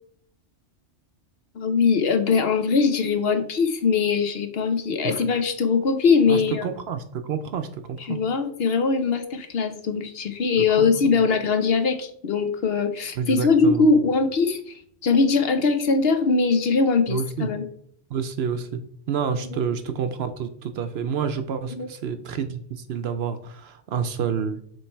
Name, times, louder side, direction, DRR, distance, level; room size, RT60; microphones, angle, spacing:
voice 1, 1.5-6.7 8.0-17.7 19.4-19.6 21.7-21.9, left 4 dB, 60° left, 7 dB, 0.9 m, -21 dB
voice 2, 6.3-8.2 10.8-11.2 13.2-13.9 17.1-17.5 18.1-18.8 19.1-24.6, right 7 dB, 65° right, 10 dB, 0.8 m, -29 dB
7.1 x 3.2 x 4.4 m, 0.63 s
omnidirectional pair, 1.2 m